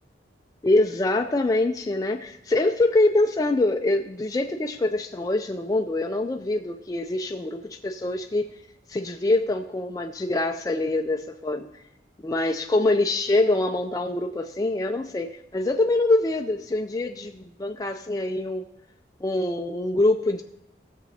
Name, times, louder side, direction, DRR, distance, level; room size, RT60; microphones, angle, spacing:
voice 1, 0.6-8.5 8.9-11.8 12.2-18.7 19.2-20.4, left 2 dB, 20° left, 4 dB, 0.3 m, -24 dB
17.0 x 7.0 x 2.8 m, 0.82 s
head